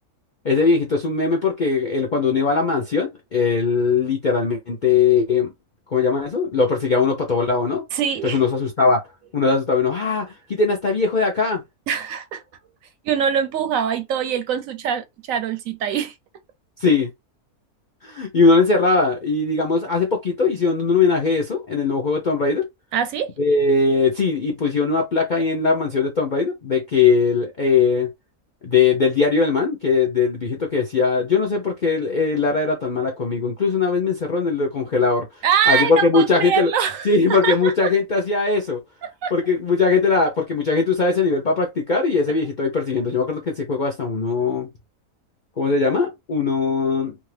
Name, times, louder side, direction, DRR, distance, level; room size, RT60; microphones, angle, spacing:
voice 1, 0.4-5.5 5.9-7.8 8.2-9.0 9.3-11.6 16.8-17.1 18.0-22.7 23.4-28.1 28.6-35.3 35.7-36.7 37.0-38.8 39.3-44.7 45.6-47.2, left 4 dB, 55° left, 0.5 m, -20 dB
voice 2, 7.9-8.4 11.9-12.4 13.0-16.1 22.9-23.3 35.4-37.9 39.0-39.3, right 8 dB, 70° right, 0.9 m, -23 dB
2.7 x 2.4 x 3.2 m
omnidirectional pair, 1.6 m